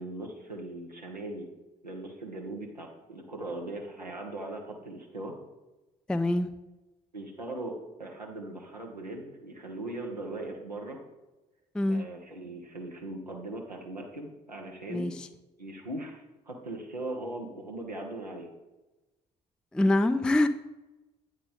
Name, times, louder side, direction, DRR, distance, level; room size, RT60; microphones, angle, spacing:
voice 1, 0.0-1.5 1.8-5.3 7.1-11.0 11.9-15.2 15.6-16.2 16.5-18.5, right 2 dB, 90° right, 0 dB, 0.7 m, -39 dB
voice 2, 6.1-6.5 11.7-12.0 14.9-15.3 19.7-20.5, left 1 dB, 5° left, 9 dB, 0.3 m, -25 dB
8.7 x 3.7 x 5.1 m, 1.1 s
figure-of-eight pair, 45°, 21 cm